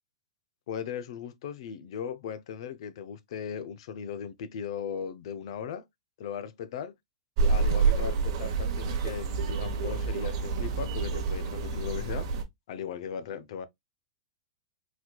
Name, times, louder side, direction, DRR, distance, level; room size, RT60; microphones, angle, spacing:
voice 1, 0.7-5.8 6.2-6.9 7.4-12.3 12.7-13.7, left 7 dB, 60° left, 0.5 m, -38 dB
sound 1, 7.4-12.4, right 4 dB, 50° right, 0.9 m, -28 dB
4.0 x 2.9 x 2.2 m
hypercardioid pair, 150°, 3 cm